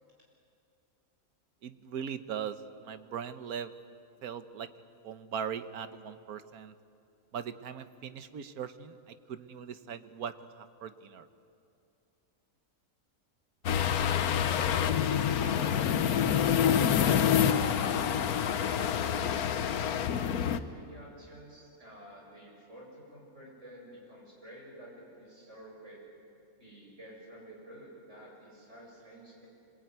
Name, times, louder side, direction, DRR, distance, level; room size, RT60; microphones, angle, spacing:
voice 1, 1.6-2.6 2.8-3.7 4.2-4.7 5.0-6.7 7.3-11.3, right 8 dB, 90° right, 11 dB, 1.5 m, -39 dB
sound 1, 13.7-20.6, left 9 dB, 90° left, 1.4 m, -27 dB
voice 2, 14.5-17.7 18.5-26.0 26.6-29.5, equal, 55° right, -3 dB, 7.7 m, -48 dB
26.0 x 21.5 x 9.5 m, 2.6 s
omnidirectional pair, 1.5 m